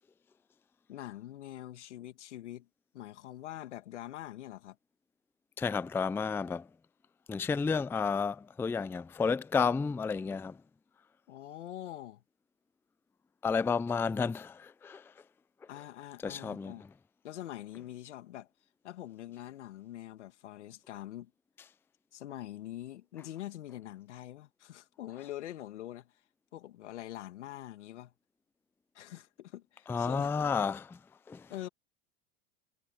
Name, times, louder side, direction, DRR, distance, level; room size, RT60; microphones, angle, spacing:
voice 1, 0.9-2.7 2.9-4.8 11.3-12.2 15.7-16.8 17.2-18.5 18.8-21.3 22.1-26.1 26.5-28.1 28.9-30.3 31.5-31.7, left 13 dB, 80° left, 2.1 m, -44 dB
voice 2, 5.6-6.7 7.3-10.6 13.4-15.0 16.2-16.7 29.9-31.0 31.3-31.5, left 5 dB, 5° left, 0.4 m, -31 dB
hypercardioid pair, 105°, 34 cm